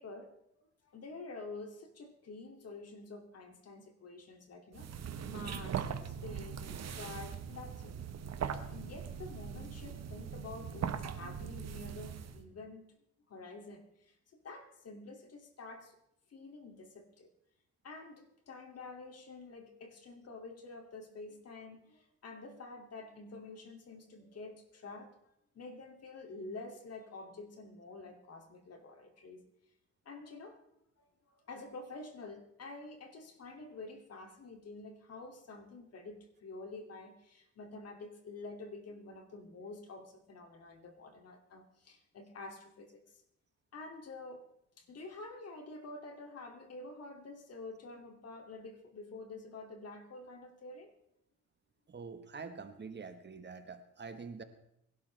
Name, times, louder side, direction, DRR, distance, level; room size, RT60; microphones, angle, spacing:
voice 1, 0.0-7.9 8.4-12.8 13.3-16.0 16.3-17.3 17.8-25.1 25.5-29.4 30.0-30.7 31.0-43.2 43.7-44.4 44.8-50.9, left 3 dB, 55° left, 4 dB, 2.7 m, -48 dB
sound 1, 4.7-12.4, right 8 dB, 60° right, 1.3 m, -40 dB
voice 2, 51.9-54.4, right 5 dB, 35° right, 8 dB, 1.4 m, -46 dB
22.5 x 12.0 x 3.4 m, 0.76 s
cardioid pair, 90°, 30 cm